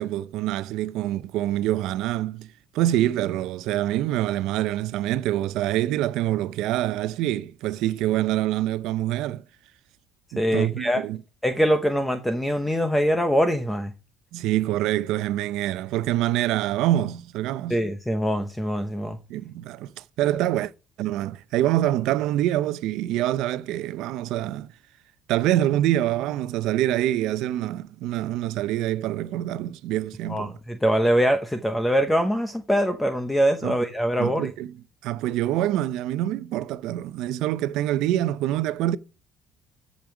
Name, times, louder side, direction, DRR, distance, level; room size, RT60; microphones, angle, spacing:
voice 1, 0.0-2.5 2.7-9.4 10.3-11.2 14.3-17.8 19.3-20.7 21.0-24.7 25.3-30.5 33.6-33.8 34.2-34.8 35.0-39.0, right 13 dB, 70° right, 0.6 m, -25 dB
voice 2, 10.4-11.0 11.4-13.9 17.7-19.2 30.3-34.5, equal, 5° left, 0.9 m, -23 dB
14.0 x 5.3 x 6.0 m
cardioid pair, 145°, 0 cm